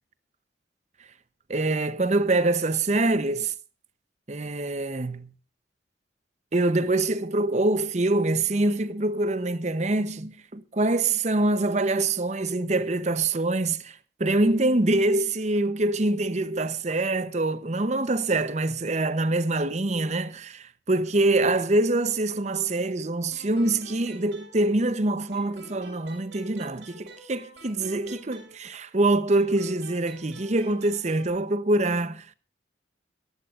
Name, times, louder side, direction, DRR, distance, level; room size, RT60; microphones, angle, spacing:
voice 1, 1.5-3.5 4.3-5.3 6.5-32.3, right 2 dB, 35° right, 0.8 m, -25 dB
sound 1, 23.3-25.0 25.3-28.9 29.3-31.3, right 2 dB, 70° right, 7.4 m, -48 dB
23.0 x 14.5 x 2.5 m
head